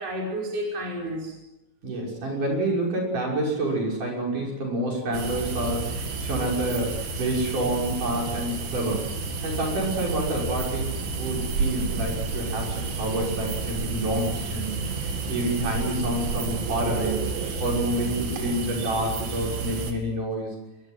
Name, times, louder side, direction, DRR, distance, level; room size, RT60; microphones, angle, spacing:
voice 1, 0.0-1.4 12.7-13.0 17.4-17.6 18.4-18.5 18.8-19.1 19.4-19.5, equal, 40° right, -1 dB, 6.6 m, -33 dB
voice 2, 1.8-9.1 9.4-17.3 17.6-20.5, right 1 dB, 55° right, -1 dB, 7.7 m, -28 dB
sound 1, 5.1-19.9, right 4 dB, 75° right, 4.6 m, -30 dB
23.0 x 22.5 x 9.5 m, 0.97 s
omnidirectional pair, 4.2 m